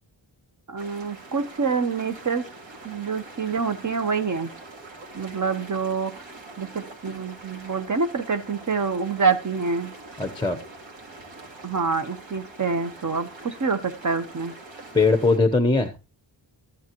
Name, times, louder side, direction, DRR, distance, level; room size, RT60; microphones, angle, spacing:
voice 1, 0.7-2.4 2.8-4.5 5.1-6.1 6.6-9.9 11.6-14.5, right 5 dB, 40° right, 9 dB, 1.1 m, -26 dB
sound 1, 0.8-15.4, right 2 dB, 80° right, 2.6 m, -44 dB
voice 2, 10.2-10.6 14.9-16.0, left 3 dB, 10° left, 8 dB, 0.9 m, -20 dB
14.0 x 10.5 x 3.0 m, 0.29 s
wide cardioid pair, 130°, 44 cm